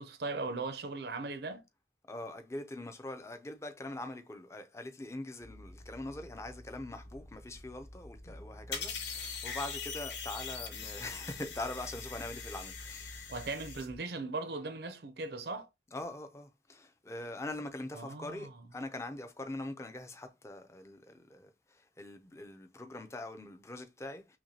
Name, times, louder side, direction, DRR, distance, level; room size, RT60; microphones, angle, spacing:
voice 1, 0.0-1.6 13.3-15.7 17.9-18.5, right 3 dB, 65° right, 0.6 m, -38 dB
voice 2, 2.1-13.5 15.9-24.4, left 2 dB, 15° left, 0.5 m, -43 dB
sound 1, 5.4-14.0, equal, 60° left, 1.4 m, -51 dB
sound 2, 8.7-13.9, left 6 dB, 85° left, 1.0 m, -42 dB
5.8 x 2.2 x 2.8 m
head